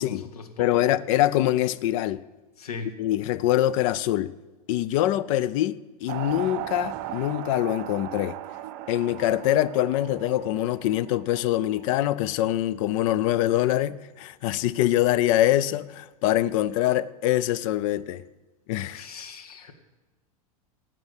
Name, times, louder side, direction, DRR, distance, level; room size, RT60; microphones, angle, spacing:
voice 1, 0.0-0.8 2.6-2.9 18.9-19.7, left 5 dB, 80° left, 1.9 m, -38 dB
voice 2, 0.6-2.2 3.0-4.3 4.7-8.4 8.9-18.2 18.7-19.1, left 13 dB, 60° left, 0.7 m, -24 dB
sound 1, 6.1-12.0, right 12 dB, 50° right, 0.8 m, -37 dB
15.5 x 6.2 x 9.0 m
hypercardioid pair, 100°, 19 cm